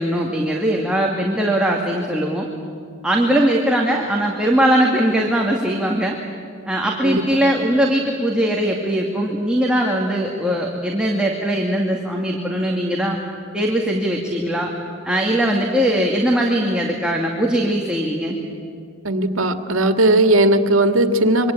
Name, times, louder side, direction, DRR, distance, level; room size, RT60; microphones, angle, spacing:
voice 1, 0.0-2.5 3.0-6.2 6.7-13.2 13.5-14.7 15.0-18.4, right 1 dB, 5° right, -1 dB, 2.3 m, -20 dB
voice 2, 7.0-7.4 19.0-21.5, right 1 dB, 85° right, 7 dB, 1.9 m, -17 dB
26.5 x 24.5 x 8.9 m, 2.4 s
head